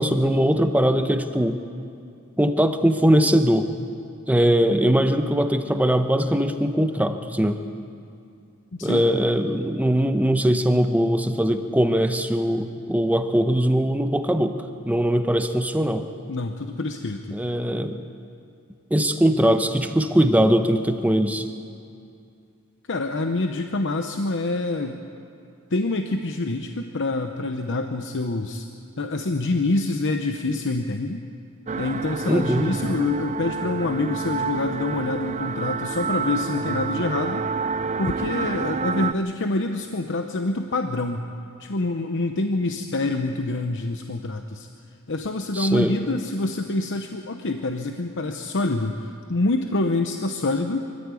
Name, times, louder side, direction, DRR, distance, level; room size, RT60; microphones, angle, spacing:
voice 1, 0.0-1.6 2.4-3.7 4.3-7.6 8.8-14.6 14.8-16.0 17.3-18.0 18.9-21.5 32.3-32.7 45.5-46.0, equal, 5° right, 7 dB, 0.9 m, -21 dB
voice 2, 16.3-17.4 22.9-25.0 25.7-28.7 29.0-31.2 31.8-37.5 38.0-41.3 41.6-44.7 45.1-50.8, left 2 dB, 55° left, 5 dB, 0.9 m, -26 dB
sound 1, 31.7-39.1, right 5 dB, 30° right, 0.4 m, -28 dB
24.0 x 14.5 x 8.4 m, 2.5 s
head